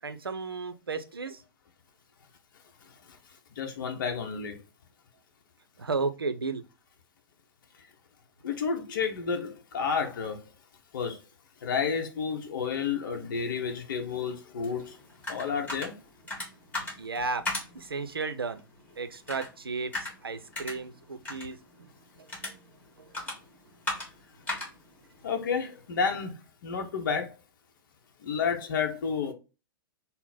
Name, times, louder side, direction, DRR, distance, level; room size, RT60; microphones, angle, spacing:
voice 1, 0.0-1.4 5.8-6.6 17.0-17.4 17.7-18.6 19.0-21.9 22.2-22.6 23.0-23.1, right 4 dB, 80° right, 0.5 m, -34 dB
voice 2, 3.6-4.6 8.4-10.5 10.9-11.2 11.6-15.0 15.3-15.9 25.2-27.4 28.2-29.3, left 6 dB, 55° left, 0.7 m, -31 dB
sound 1, 14.6-26.3, left 2 dB, 15° left, 1.5 m, -40 dB
3.8 x 2.0 x 3.9 m
figure-of-eight pair, 105°, 12 cm